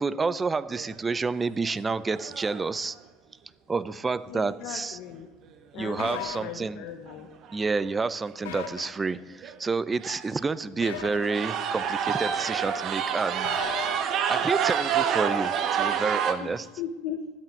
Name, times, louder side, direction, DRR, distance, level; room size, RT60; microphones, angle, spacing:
voice 1, 0.0-3.0 3.7-5.0 5.7-6.8 7.5-13.6 14.3-16.7, right 4 dB, 20° right, 18 dB, 0.5 m, -29 dB
sound 1, 0.7-1.1 1.7-1.8 2.1-2.7 5.9-6.0 7.1-7.2 7.4-7.8 8.3-8.4 9.1-9.2 9.4-9.6 10.0-10.4 11.0-16.3, right 8 dB, 50° right, 1.1 m, -28 dB
voice 2, 4.3-5.3 5.7-7.3 16.4-17.3, left 9 dB, 60° left, 5 dB, 1.0 m, -37 dB
sound 2, 6.0-6.4 8.4-8.8 10.8-11.3 13.4-13.9, left 7 dB, 85° left, 1.3 m, -36 dB
12.5 x 8.4 x 5.3 m, 1.2 s
hypercardioid pair, 90°, 0 cm